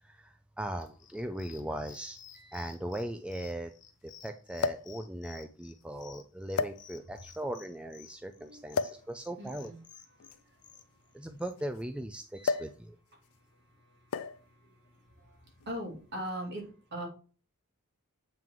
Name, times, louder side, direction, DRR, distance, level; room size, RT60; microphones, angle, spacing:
voice 1, 0.0-3.7 4.0-9.7 11.1-13.0, right 1 dB, 5° right, 0.4 m, -39 dB
sound 1, 0.8-11.5, left 8 dB, 35° left, 0.9 m, -54 dB
sound 2, 0.9-1.0 2.0-2.1 2.4-2.5 4.6-5.0 5.8-6.0 6.5-7.2 8.7-9.1 10.2-11.8 12.4-12.8 13.1-13.4 14.1-14.5 15.5-15.7, left 5 dB, 65° left, 0.5 m, -33 dB
voice 2, 8.4-9.1 9.4-9.8 10.1-11.3 13.1-17.1, equal, 50° right, 2.8 m, -44 dB
7.6 x 3.7 x 4.6 m
head